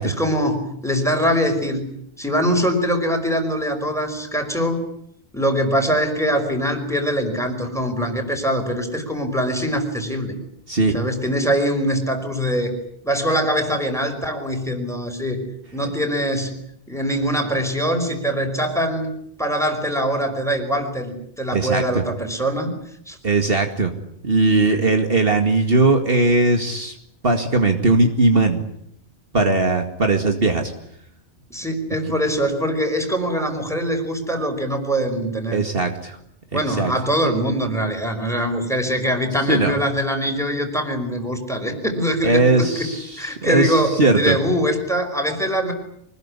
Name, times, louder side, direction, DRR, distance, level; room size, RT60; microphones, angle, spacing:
voice 1, 0.0-1.9 2.2-4.9 5.3-10.3 10.9-12.7 13.0-15.4 15.7-16.5 16.9-19.1 19.4-22.8 23.1-23.2 24.7-24.8 31.5-35.6 36.5-42.9 43.2-45.7, equal, ahead, 4 dB, 5.2 m, -23 dB
voice 2, 10.7-11.0 21.5-22.0 23.2-23.9 24.2-26.9 27.2-28.6 29.3-30.7 35.5-36.2 36.5-36.9 39.5-39.7 42.2-43.0 43.4-44.4, right 2 dB, 55° right, 5 dB, 2.4 m, -19 dB
25.0 x 20.5 x 9.8 m, 0.72 s
omnidirectional pair, 1.2 m